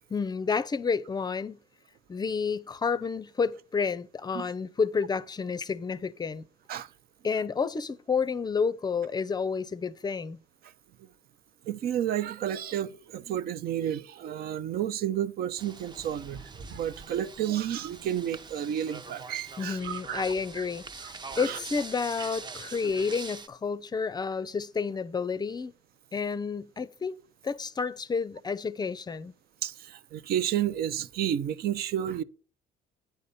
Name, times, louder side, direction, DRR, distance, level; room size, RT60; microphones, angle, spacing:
voice 1, 0.1-1.6 2.1-6.5 7.2-10.4 19.6-25.7 26.1-27.2 27.4-29.3, left 5 dB, 25° left, 0.5 m, -30 dB
voice 2, 11.6-20.2 20.6-20.7 21.0-21.6 29.6-32.2, right 10 dB, 65° right, 0.6 m, -31 dB
sound 1, 15.6-23.5, right 4 dB, 25° right, 0.7 m, -44 dB
9.1 x 4.1 x 6.7 m
cardioid pair, 110°, 17 cm